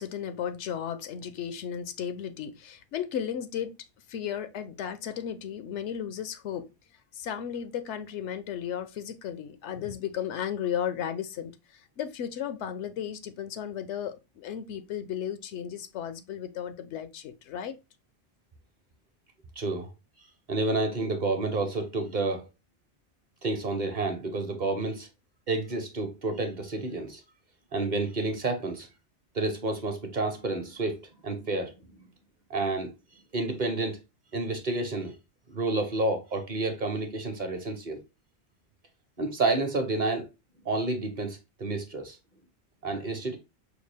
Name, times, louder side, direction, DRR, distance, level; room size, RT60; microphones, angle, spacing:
voice 1, 0.0-3.7 4.1-6.7 7.1-17.8, left 9 dB, 85° left, 0.9 m, -34 dB
voice 2, 19.6-19.9 20.5-22.4 23.4-25.1 25.5-27.2 27.7-28.9 29.3-32.1 32.5-32.9 33.3-34.0 34.3-35.1 35.5-38.0 39.2-40.2 40.6-42.2 42.8-43.4, right 2 dB, 45° right, 0.8 m, -30 dB
5.0 x 2.4 x 3.3 m
omnidirectional pair, 1.2 m